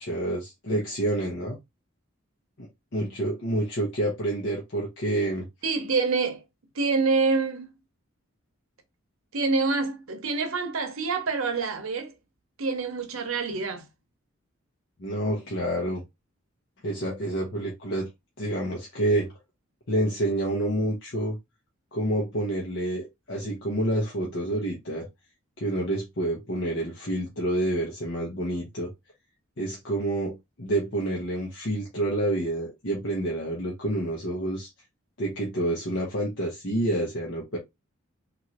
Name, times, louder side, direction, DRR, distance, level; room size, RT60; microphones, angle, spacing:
voice 1, 0.0-1.6 2.6-2.7 2.9-5.5 15.0-16.0 16.8-18.1 18.4-19.3 19.9-21.4 21.9-25.1 25.6-28.9 29.6-34.7 35.2-37.6, right 1 dB, 55° left, 0.8 m, -28 dB
voice 2, 5.6-6.4 6.7-7.7 9.3-12.1 12.6-13.8, right 4 dB, 75° right, 0.8 m, -26 dB
3.1 x 2.5 x 2.8 m
head